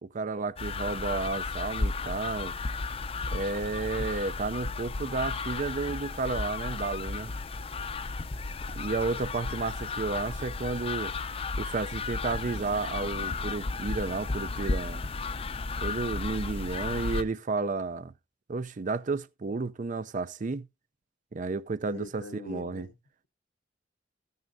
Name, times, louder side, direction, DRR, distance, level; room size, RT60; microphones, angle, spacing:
voice 1, 0.0-2.5 3.3-7.3 8.8-11.1 11.6-15.0 15.8-18.1 18.5-20.7 21.3-22.9, right 3 dB, 40° right, 0.5 m, -32 dB
sound 1, 0.6-17.2, left 3 dB, 30° left, 0.5 m, -34 dB
voice 2, 21.9-23.0, left 2 dB, 80° left, 1.0 m, -43 dB
13.5 x 9.4 x 2.6 m
head